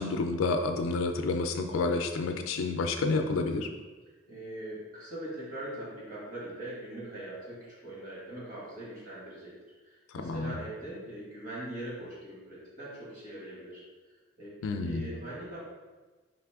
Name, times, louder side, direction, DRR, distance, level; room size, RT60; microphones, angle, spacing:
voice 1, 0.0-3.7 10.1-10.6 14.6-15.1, left 3 dB, 90° left, 6 dB, 0.3 m, -29 dB
voice 2, 4.3-9.5 9.8-13.8 14.4-15.6, right 1 dB, 45° right, -6 dB, 1.5 m, -41 dB
4.1 x 3.3 x 3.4 m, 1.3 s
head